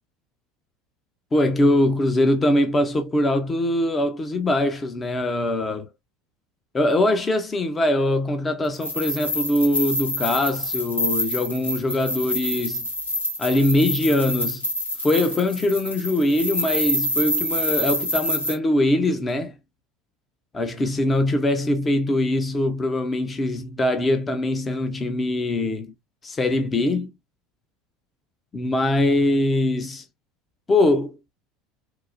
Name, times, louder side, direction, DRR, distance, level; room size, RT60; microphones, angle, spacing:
voice 1, 1.3-5.9 6.7-12.9 13.4-14.7 15.0-19.5 20.5-25.9 26.2-27.1 28.5-30.0 30.7-31.2, left 1 dB, 25° left, 0.7 m, -22 dB
sound 1, 8.7-18.6, left 1 dB, 90° left, 0.9 m, -27 dB
4.7 x 2.1 x 2.5 m
figure-of-eight pair, 70°, 0 cm